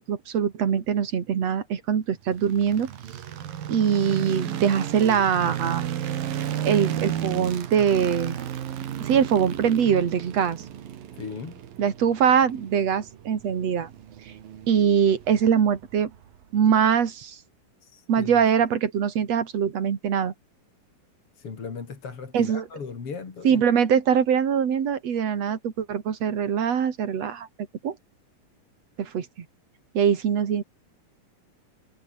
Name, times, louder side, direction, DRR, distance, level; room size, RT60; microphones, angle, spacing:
voice 1, 0.0-2.9 3.7-5.9 6.6-8.4 9.0-10.6 11.8-13.9 14.7-16.1 16.5-17.4 18.1-20.3 22.3-22.7 23.4-27.5 27.8-28.0 29.0-29.3 29.9-30.6, right 8 dB, 50° right, 3.1 m, -23 dB
sound 1, 2.3-16.4, right 10 dB, 80° right, 3.8 m, -34 dB
voice 2, 11.2-11.5 17.8-18.4 21.4-23.6, left 5 dB, 40° left, 3.8 m, -37 dB
omnidirectional pair, 4.0 m